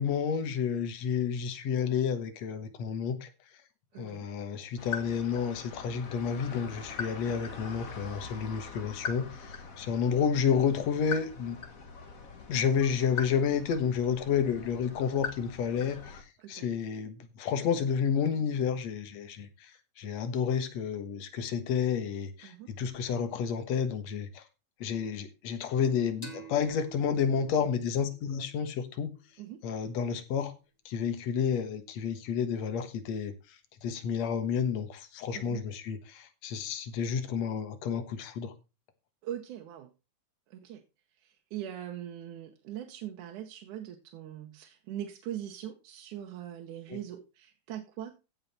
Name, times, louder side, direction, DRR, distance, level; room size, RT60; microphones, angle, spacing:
voice 1, 0.0-3.3 4.0-11.6 12.5-19.7 20.0-24.4 24.8-29.1 29.6-30.5 30.9-33.3 33.8-38.5 46.9-47.0, left 7 dB, 65° left, 2.6 m, -30 dB
voice 2, 3.9-4.3 7.6-7.7 9.9-10.0 16.4-16.7 22.4-22.7 29.4-29.6 35.3-35.6 39.2-39.9 40.5-40.8 41.2-48.2, right 11 dB, 85° right, 2.5 m, -41 dB
sound 1, 4.8-16.2, left 5 dB, 40° left, 1.3 m, -42 dB
sound 2, 26.2-29.6, right 4 dB, 15° left, 2.1 m, -50 dB
16.0 x 5.6 x 4.2 m
omnidirectional pair, 3.4 m